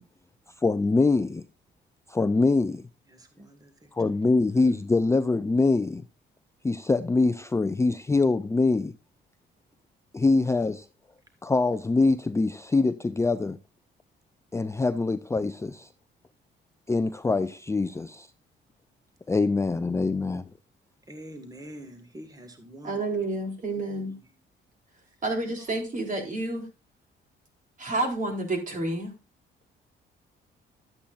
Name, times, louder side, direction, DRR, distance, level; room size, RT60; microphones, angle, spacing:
voice 1, 0.6-1.4 2.1-2.9 3.9-6.0 6.6-8.9 10.1-10.9 11.4-13.6 14.5-15.9 16.9-18.3 19.3-20.5, left 3 dB, 15° left, 0.4 m, -24 dB
voice 2, 3.1-3.9 10.5-10.6 21.1-23.0 23.9-24.2, right 1 dB, 20° right, 1.8 m, -45 dB
voice 3, 22.8-24.1 25.2-26.7 27.8-29.1, right 2 dB, 40° right, 3.6 m, -29 dB
12.0 x 8.4 x 2.5 m
cardioid pair, 90°, 20 cm